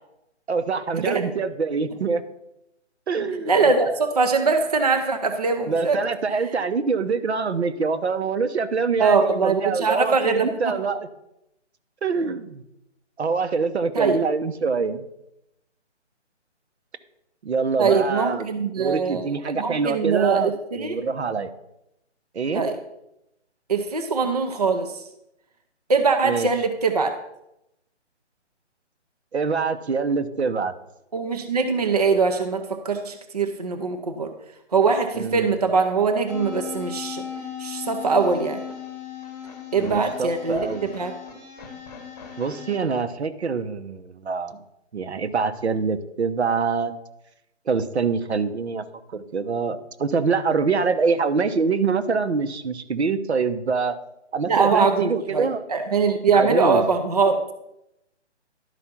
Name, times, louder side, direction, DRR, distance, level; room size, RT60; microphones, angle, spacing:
voice 1, 0.5-2.2 3.1-3.5 5.7-11.1 12.0-12.6 13.2-15.0 17.4-18.5 18.8-20.5 20.8-21.5 22.3-22.7 26.2-26.5 29.3-30.7 35.1-35.6 39.8-40.9 42.4-44.6 44.9-46.9 47.7-48.8 49.1-54.0 54.3-55.6 56.3-56.9, right 5 dB, 65° right, 10 dB, 0.9 m, -25 dB
voice 2, 3.5-6.0 9.0-10.7 13.9-14.2 17.8-19.3 19.6-21.0 22.5-22.8 23.7-25.0 25.9-27.2 31.1-34.3 34.7-37.2 37.6-38.6 39.7-41.1 54.5-57.4, right 4 dB, 35° right, 6 dB, 0.6 m, -22 dB
sound 1, 36.3-42.8, left 8 dB, 15° left, 1.1 m, -37 dB
11.5 x 5.0 x 5.9 m, 0.84 s
hypercardioid pair, 170°, 36 cm